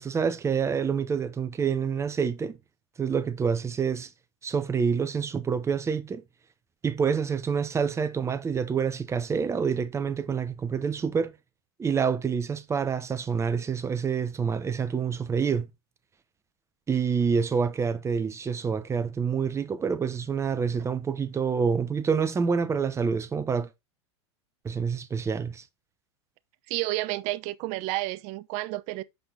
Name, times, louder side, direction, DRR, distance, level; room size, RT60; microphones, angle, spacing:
voice 1, 0.0-2.6 3.0-4.1 4.4-6.2 6.8-11.3 11.8-15.7 16.9-23.7 24.6-25.6, right 6 dB, 20° right, 0.9 m, -27 dB
voice 2, 26.7-29.0, right 18 dB, 50° right, 0.6 m, -30 dB
6.0 x 5.2 x 3.8 m
hypercardioid pair, 95°, 15 cm